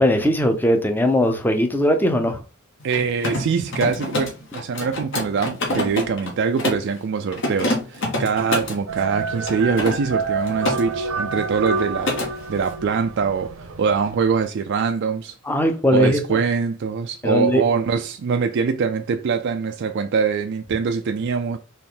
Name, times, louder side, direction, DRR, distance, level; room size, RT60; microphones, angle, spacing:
voice 1, 0.0-2.4 15.5-16.4 17.2-17.6, equal, 10° left, 0.6 m, -19 dB
Mechanisms, 2.8-6.9 7.3-8.8 9.4-10.8 11.1-11.4 11.7-12.3, left 1 dB, 60° left, 1.5 m, -26 dB
voice 2, 2.8-12.1 12.5-15.3 15.9-21.6, right 5 dB, 55° right, 0.4 m, -23 dB
sound 1, 8.9-14.3, right 4 dB, 85° right, 0.9 m, -28 dB
4.3 x 3.1 x 3.7 m
head